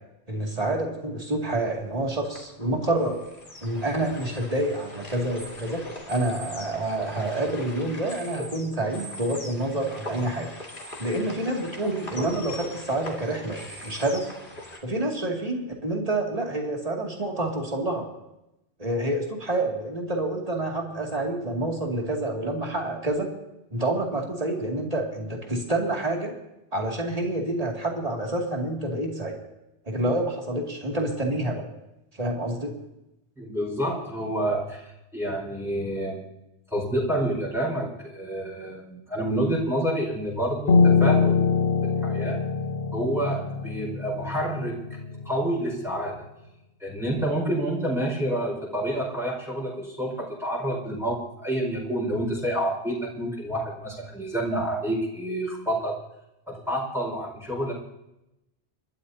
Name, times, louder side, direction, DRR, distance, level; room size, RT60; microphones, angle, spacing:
voice 1, 0.3-3.2 3.6-10.5 11.0-14.3 14.8-18.1 18.8-23.3 23.7-26.3 26.7-29.4 29.9-31.6 32.2-32.7, right 1 dB, 30° right, 0 dB, 2.7 m, -28 dB
sound 1, 1.7-14.8, left 1 dB, 50° left, 2.6 m, -41 dB
voice 2, 33.4-36.2 36.7-41.4 41.8-42.4 42.9-44.8 45.2-46.2 46.8-55.9 56.5-57.7, right 1 dB, ahead, -4 dB, 5.0 m, -28 dB
Piano, 40.7-46.0, left 5 dB, 75° left, 1.6 m, -24 dB
30.0 x 13.0 x 2.8 m, 0.90 s
omnidirectional pair, 1.2 m